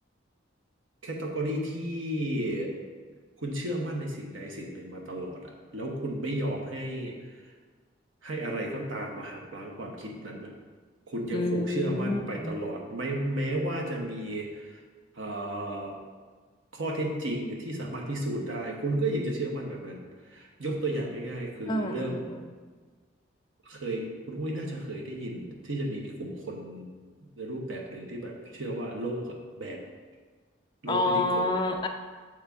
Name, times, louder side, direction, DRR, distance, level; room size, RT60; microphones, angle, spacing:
voice 1, 1.0-2.7 3.4-7.1 8.2-10.5 11.1-14.8 15.2-16.0 16.7-22.2 23.6-26.9 27.2-29.9 30.8-31.4, right 1 dB, 85° right, 0 dB, 1.0 m, -33 dB
voice 2, 11.3-12.6 21.7-22.4 30.9-31.9, left 2 dB, 25° left, 4 dB, 0.4 m, -28 dB
8.3 x 3.2 x 3.5 m, 1.5 s
head